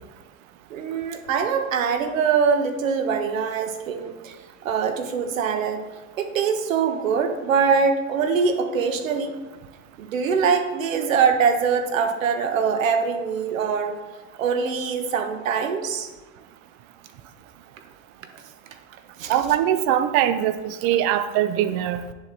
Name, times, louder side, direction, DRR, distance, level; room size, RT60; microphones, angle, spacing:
voice 1, 0.7-4.3 4.6-5.8 6.1-9.3 10.0-14.0 14.4-16.1 19.2-19.3, right 6 dB, 80° right, 6 dB, 1.5 m, -23 dB
voice 2, 19.3-22.0, right 11 dB, 45° right, 11 dB, 0.9 m, -22 dB
9.6 x 7.5 x 4.2 m, 1.3 s
hypercardioid pair, 125°, 39 cm